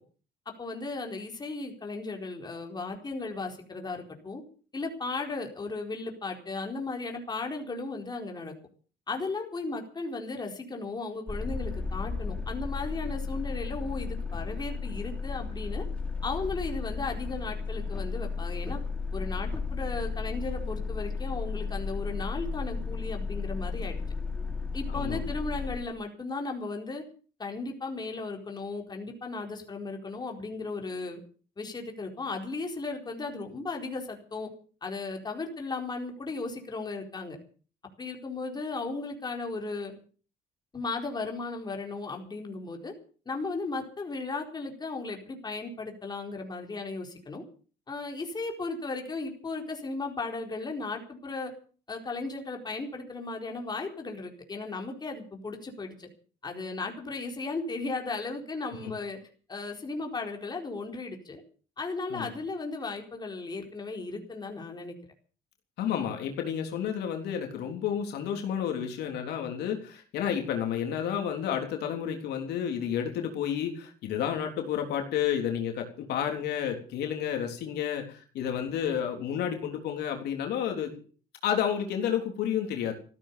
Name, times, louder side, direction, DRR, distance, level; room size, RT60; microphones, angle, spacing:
voice 1, 0.6-4.4 4.7-8.5 9.1-15.8 16.2-18.8 19.1-24.0 24.7-27.0 27.4-31.2 31.6-34.5 34.8-37.4 38.0-39.9 40.7-42.9 43.3-47.4 47.9-51.5 51.9-56.1 56.4-59.2 59.5-61.4 61.8-65.0, left 3 dB, 25° left, 2 dB, 4.3 m, -36 dB
sound 1, 11.3-25.8, left 4 dB, 5° left, 3.4 m, -34 dB
voice 2, 24.9-25.3 58.8-58.9 62.1-62.3 65.8-80.9 81.4-82.9, left 9 dB, 75° left, 4 dB, 3.7 m, -31 dB
15.5 x 13.0 x 7.0 m, 0.41 s
cardioid pair, 110°, 17 cm